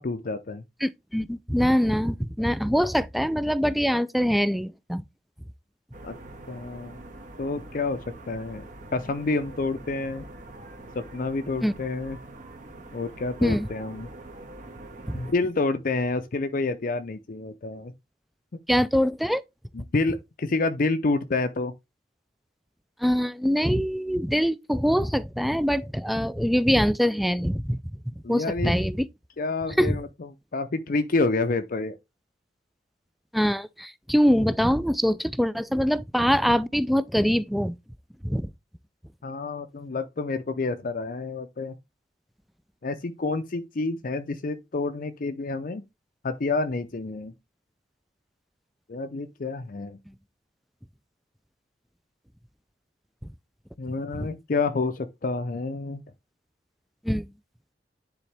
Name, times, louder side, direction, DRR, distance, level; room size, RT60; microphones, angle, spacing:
voice 1, 0.0-0.6 6.0-6.2 6.5-7.0 7.4-8.0 8.3-8.7 8.9-10.2 10.9-12.2 12.9-14.1 15.1-17.9 19.7-21.7 28.2-28.7 29.4-32.0 39.2-41.8 42.8-45.8 46.2-47.3 48.9-50.0 53.8-56.0, left 3 dB, 50° left, 0.5 m, -28 dB
voice 2, 0.8-5.0 11.6-11.7 13.4-13.7 15.1-15.2 18.7-19.4 23.0-27.8 28.3-29.1 29.8-30.0 33.3-37.8 38.2-38.5 54.1-54.3 57.0-57.3, equal, ahead, 0.3 m, -23 dB
sound 1, 5.9-15.3, right 2 dB, 50° right, 1.5 m, -44 dB
9.8 x 4.0 x 3.3 m
head